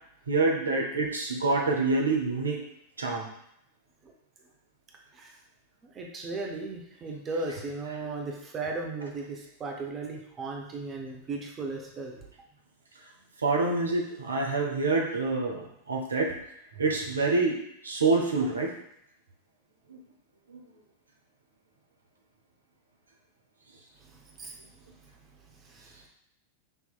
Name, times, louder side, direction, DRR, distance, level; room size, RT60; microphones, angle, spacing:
voice 1, 0.3-2.6 3.0-3.3 13.4-16.4 16.8-17.6 17.8-18.7 19.9-20.0 20.5-20.6, right 3 dB, 75° right, 0 dB, 0.6 m, -26 dB
voice 2, 5.8-12.2 24.4-24.6 25.6-26.0, right 3 dB, 25° right, 1 dB, 0.7 m, -36 dB
5.5 x 2.8 x 2.3 m, 0.74 s
figure-of-eight pair, 90°, 0 cm